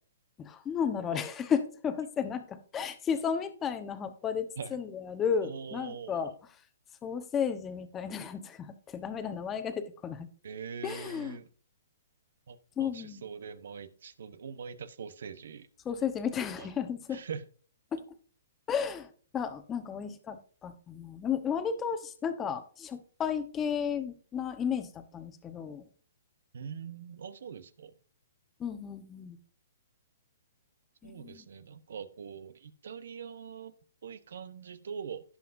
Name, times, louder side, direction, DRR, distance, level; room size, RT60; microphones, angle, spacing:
voice 1, 0.4-6.3 7.0-10.3 10.8-11.4 12.8-13.2 15.8-17.2 17.9-18.0 18.7-19.1 19.3-25.8 28.6-29.4 31.0-31.4, left 7 dB, 15° left, 0.9 m, -33 dB
voice 2, 5.4-6.3 10.4-11.5 12.5-15.7 16.6-16.7 17.1-17.4 26.5-27.9 31.0-33.7 34.0-35.2, right 6 dB, 70° right, 0.9 m, -43 dB
17.0 x 5.7 x 2.6 m
hypercardioid pair, 150°, 0 cm